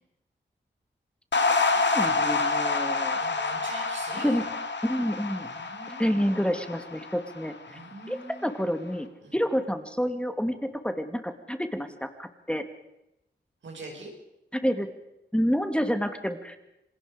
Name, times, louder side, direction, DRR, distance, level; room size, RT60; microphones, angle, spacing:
sound 1, 1.3-7.8, left 3 dB, 70° left, 2.4 m, -28 dB
voice 1, 1.9-3.2 4.2-4.4 4.8-5.5 5.9-7.5 8.1-8.2 8.4-9.1 9.3-12.6 14.5-14.9 15.3-16.6, equal, 5° left, 8 dB, 2.3 m, -28 dB
voice 2, 3.2-4.4 5.4-6.5 7.7-8.5 9.2-9.4 13.6-14.1, right 3 dB, 90° right, 1 dB, 5.5 m, -43 dB
27.5 x 20.5 x 5.1 m, 0.85 s
cardioid pair, 50°, 19 cm